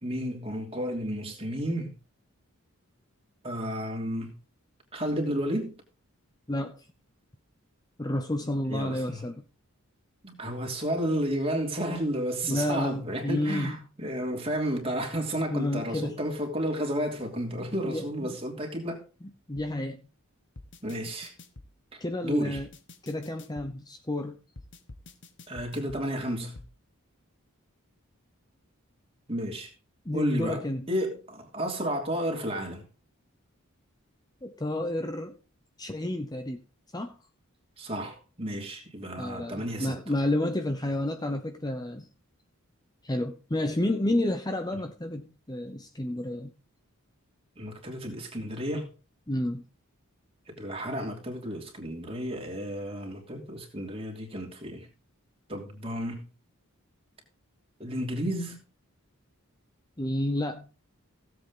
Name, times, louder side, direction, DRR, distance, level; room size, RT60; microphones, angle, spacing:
voice 1, 0.0-1.9 3.4-4.3 4.9-5.8 8.7-9.2 10.2-19.0 20.8-21.3 21.9-22.6 25.5-26.6 29.3-29.7 30.1-32.8 37.8-39.9 47.6-48.9 50.5-54.9 55.5-56.3 57.8-58.6, equal, 25° right, 3.1 m, -32 dB
voice 2, 6.5-6.8 8.0-9.4 12.4-13.9 15.5-16.2 17.8-18.4 19.2-20.0 22.0-22.7 23.0-24.4 30.0-30.9 34.4-35.3 35.8-36.6 36.9-37.2 39.2-42.1 43.0-46.5 49.3-49.6 60.0-60.7, left 1 dB, 20° left, 0.8 m, -30 dB
sound 1, 19.6-19.7 20.6-21.7 22.6-23.7 24.6-26.0 26.6-26.7, left 2 dB, 55° left, 1.4 m, -47 dB
16.5 x 8.0 x 3.8 m
head